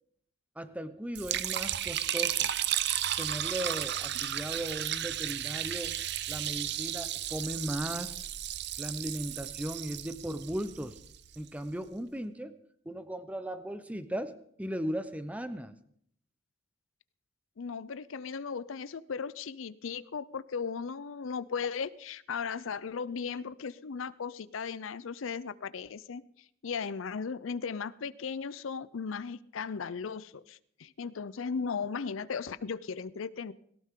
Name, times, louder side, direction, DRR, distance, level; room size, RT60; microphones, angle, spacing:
voice 1, 0.6-2.5 3.2-6.0 6.3-8.2 8.8-11.0 11.4-12.5 12.9-15.7, right 1 dB, 5° right, 11 dB, 0.8 m, -37 dB
Liquid, 1.1-11.3, right 11 dB, 55° right, 0.7 m, -34 dB
voice 2, 17.6-26.2 26.6-33.5, left 5 dB, 75° left, 17 dB, 0.5 m, -36 dB
18.0 x 18.0 x 3.7 m, 0.67 s
head